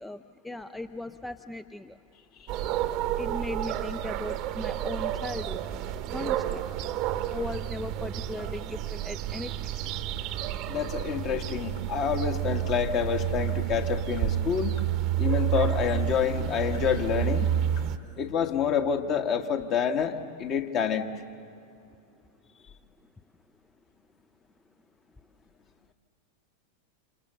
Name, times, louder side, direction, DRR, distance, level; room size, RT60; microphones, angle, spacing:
voice 1, 0.0-2.0 3.2-5.6 6.1-6.6 7.3-9.7, left 2 dB, 5° left, 11 dB, 0.5 m, -37 dB
sound 1, 2.5-18.0, right 11 dB, 40° right, 1.0 m, -30 dB
sound 2, 7.5-7.7 8.4-8.7 9.4-9.5 10.1-10.3 10.9-11.1 11.7-11.9 12.5-12.8 13.5-13.6 14.1-14.3 14.8-15.0 15.4-15.6 16.1-16.3 16.7-17.0 17.7-17.9, left 7 dB, 65° left, 4.7 m, -51 dB
voice 2, 10.7-14.7 15.2-17.5 18.2-21.1, left 7 dB, 35° left, 5 dB, 1.6 m, -28 dB
28.5 x 27.5 x 6.9 m, 2.5 s
figure-of-eight pair, 90°, 0 cm